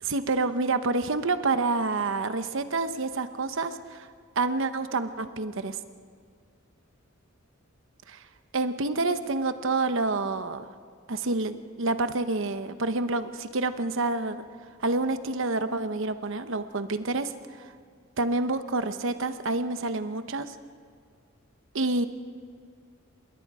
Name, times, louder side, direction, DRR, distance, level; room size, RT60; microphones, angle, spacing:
voice 1, 0.0-4.1 4.4-5.8 8.1-8.2 8.5-10.6 11.1-14.4 14.8-17.3 17.6-17.7 18.2-20.5 21.7-22.1, right 3 dB, 65° right, 10 dB, 1.0 m, -28 dB
27.0 x 21.0 x 4.9 m, 2.1 s
head